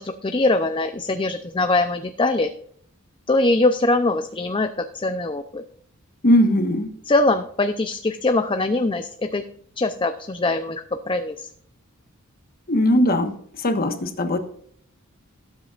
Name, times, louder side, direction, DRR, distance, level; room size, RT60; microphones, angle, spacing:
voice 1, 0.0-2.5 3.3-4.7 4.9-5.6 7.1-9.4 9.8-11.5, left 2 dB, 25° left, 7 dB, 0.6 m, -22 dB
voice 2, 6.2-6.9 12.7-13.3 13.6-14.4, left 1 dB, 45° left, 6 dB, 1.4 m, -19 dB
17.5 x 8.2 x 2.5 m, 0.63 s
head